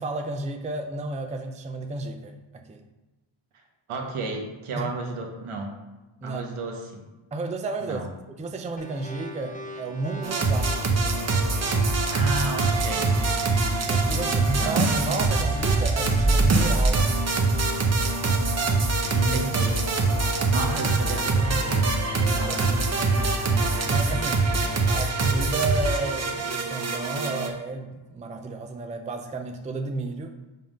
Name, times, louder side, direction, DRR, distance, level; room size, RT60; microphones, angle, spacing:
voice 1, 0.0-2.4 2.7-2.8 4.8-4.9 6.2-6.4 7.3-8.0 8.4-10.8 13.9-17.1 20.2-20.6 22.5-22.6 23.2-24.5 24.8-30.3, right 3 dB, 15° right, 5 dB, 0.4 m, -32 dB
voice 2, 3.9-5.8 6.2-7.0 7.8-8.1 12.1-13.1 14.2-14.8 19.1-19.8 20.4-23.0, right 2 dB, 80° right, 1 dB, 1.3 m, -32 dB
sound 1, 8.8-24.8, left 2 dB, 15° left, 0.7 m, -41 dB
sound 2, 10.2-27.5, right 3 dB, 30° right, 0.8 m, -23 dB
5.5 x 3.7 x 5.1 m, 1.1 s
wide cardioid pair, 130°, 50 cm